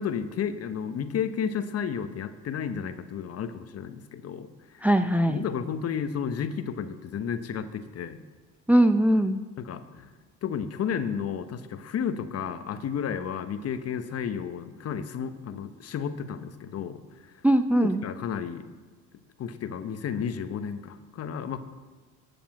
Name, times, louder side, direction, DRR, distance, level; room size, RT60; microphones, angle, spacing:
voice 1, 0.0-4.9 5.3-8.2 9.6-10.1 10.4-17.0 17.8-18.6 19.4-21.6, left 7 dB, 45° left, 10 dB, 1.1 m, -32 dB
voice 2, 4.8-5.4 8.7-9.4 17.4-18.0, right 1 dB, 5° right, 8 dB, 0.6 m, -21 dB
13.0 x 7.1 x 7.3 m, 1.4 s
supercardioid pair, 80°, 34 cm